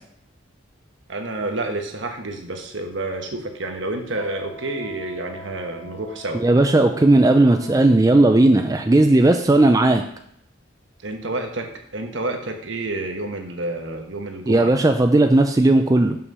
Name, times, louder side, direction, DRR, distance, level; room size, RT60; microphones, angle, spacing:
voice 1, 1.1-6.4 11.0-14.7, right 2 dB, 70° right, 4 dB, 1.1 m, -29 dB
Wind instrument woodwind instrument, 4.1-8.8, left 1 dB, 40° left, 0.9 m, -43 dB
voice 2, 6.3-10.0 14.5-16.2, right 2 dB, 15° right, 5 dB, 0.4 m, -16 dB
6.3 x 5.8 x 5.5 m, 0.71 s
head